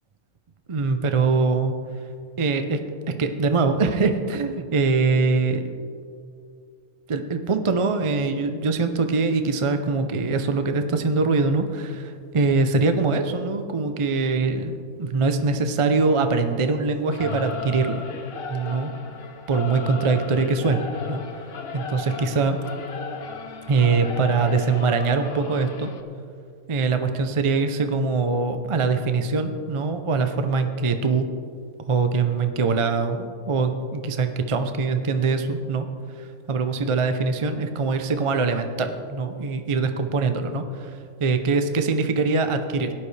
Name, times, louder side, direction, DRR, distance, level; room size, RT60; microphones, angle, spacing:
voice 1, 0.7-1.8 2.4-2.8 3.2-5.7 7.1-18.0 18.5-18.9 19.5-21.5 21.7-22.6 23.7-25.9 26.7-31.3 31.8-42.9, right 4 dB, 40° right, 7 dB, 0.4 m, -23 dB
Singing / Musical instrument, 17.1-26.0, left 5 dB, 50° left, 0.9 m, -35 dB
17.5 x 11.5 x 3.3 m, 2.2 s
omnidirectional pair, 1.5 m